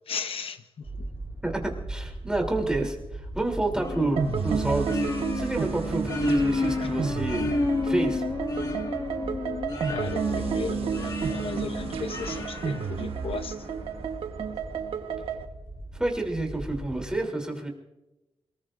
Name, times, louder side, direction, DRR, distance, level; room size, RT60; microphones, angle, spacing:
voice 1, 0.1-1.1 6.8-6.9 9.9-13.7, left 5 dB, 70° left, 0.8 m, -36 dB
sound 1, 0.8-17.2, right 2 dB, 30° right, 3.9 m, -40 dB
voice 2, 1.4-7.5 7.8-8.2 15.9-17.7, right 2 dB, 10° right, 3.2 m, -29 dB
sound 2, 3.8-13.6, left 3 dB, 40° left, 1.5 m, -31 dB
sound 3, 4.2-15.5, right 6 dB, 75° right, 1.2 m, -31 dB
28.0 x 19.5 x 2.6 m
wide cardioid pair, 125°, 10 cm